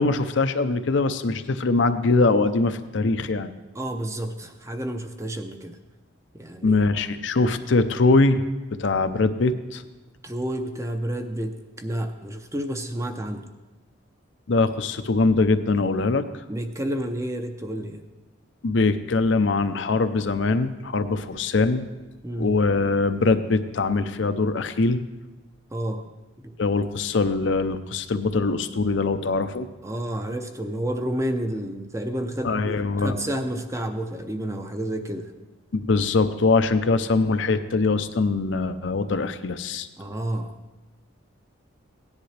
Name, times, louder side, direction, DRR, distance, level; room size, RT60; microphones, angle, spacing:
voice 1, 0.0-3.5 6.6-8.4 8.7-9.8 14.5-16.2 18.6-21.9 22.4-25.0 26.6-29.7 32.4-33.2 35.7-39.9, left 3 dB, 65° left, 9 dB, 0.6 m, -22 dB
voice 2, 3.8-5.8 6.4-6.8 10.2-13.4 16.5-18.0 22.2-22.5 25.7-26.1 26.4-26.5 29.8-35.3 40.0-40.5, right 1 dB, 15° right, 6 dB, 0.7 m, -30 dB
16.5 x 10.5 x 3.3 m, 1.1 s
head